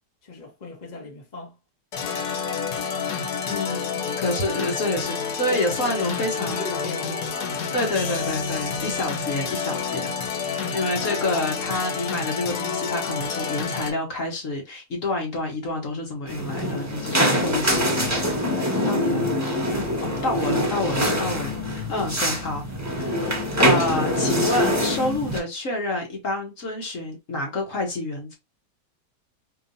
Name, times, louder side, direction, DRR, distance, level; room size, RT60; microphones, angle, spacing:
voice 1, 0.2-1.6 2.0-2.9 4.0-4.6 5.5-7.9 20.6-21.8, left 3 dB, 30° left, 1.2 m, -39 dB
sound 1, 1.9-13.9, left 6 dB, 75° left, 1.4 m, -29 dB
voice 2, 3.5-6.6 7.7-10.1 10.4-18.2 18.6-19.2 19.7-22.6 23.0-28.3, left 2 dB, 55° left, 1.4 m, -28 dB
sound 2, 16.3-25.4, equal, 10° right, 1.0 m, -24 dB
4.5 x 2.9 x 2.6 m
omnidirectional pair, 1.7 m